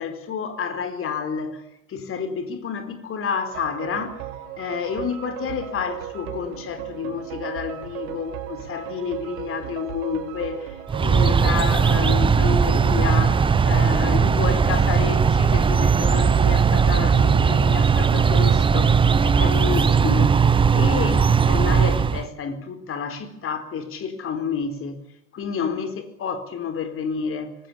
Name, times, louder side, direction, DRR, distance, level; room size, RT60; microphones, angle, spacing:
voice 1, 0.0-1.6 1.9-4.2 4.6-25.0 25.3-27.5, left 6 dB, 30° left, 4.2 m, -30 dB
sound 1, 3.5-12.2, right 12 dB, 45° right, 3.8 m, -36 dB
sound 2, 10.9-22.3, right 6 dB, 10° right, 0.9 m, -18 dB
25.0 x 20.5 x 8.5 m
figure-of-eight pair, 80°, 45 cm